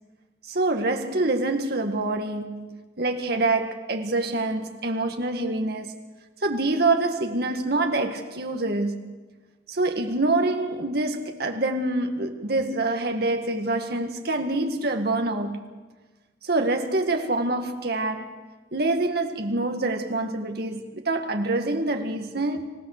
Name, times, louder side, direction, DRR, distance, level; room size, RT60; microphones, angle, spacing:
voice 1, 0.4-5.9 6.4-9.1 9.7-15.7 16.4-18.4 18.7-22.6, right 2 dB, 55° right, 1.9 m, -26 dB
26.5 x 16.0 x 6.7 m
head